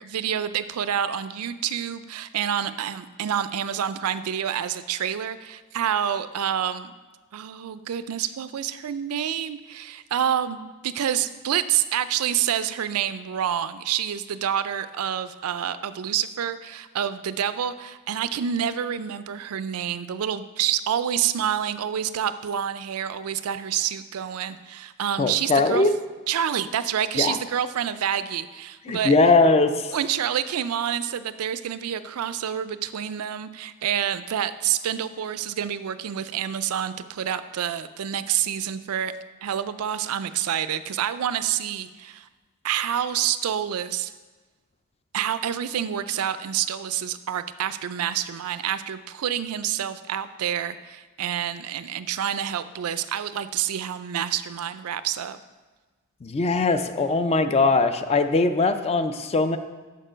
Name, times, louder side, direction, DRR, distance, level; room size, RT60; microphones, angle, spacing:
voice 1, 0.0-6.9 7.3-25.9 26.3-29.1 29.9-39.1 39.4-42.3 42.6-44.1 45.1-55.4, right 9 dB, 90° right, 13 dB, 0.4 m, -28 dB
voice 2, 25.2-25.9 27.2-27.4 28.9-29.9 56.2-59.6, left 3 dB, 30° left, 9 dB, 0.4 m, -20 dB
6.6 x 6.4 x 5.0 m, 1.3 s
head